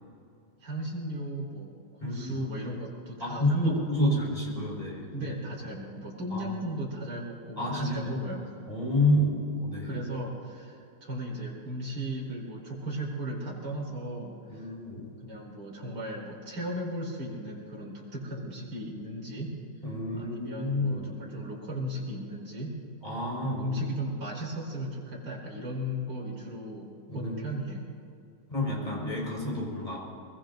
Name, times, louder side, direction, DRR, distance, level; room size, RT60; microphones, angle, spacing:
voice 1, 0.6-1.7 2.0-4.2 5.1-8.5 9.8-19.5 20.1-22.7 23.4-28.0, equal, 50° right, -4 dB, 4.6 m, -36 dB
voice 2, 2.0-2.4 3.2-5.3 6.3-6.5 7.6-8.2 8.7-10.0 14.5-15.0 19.8-21.0 23.0-23.8 27.1-27.3 28.5-30.0, left 1 dB, 15° left, -3 dB, 5.0 m, -29 dB
24.0 x 23.5 x 2.6 m, 2.6 s
omnidirectional pair, 2.3 m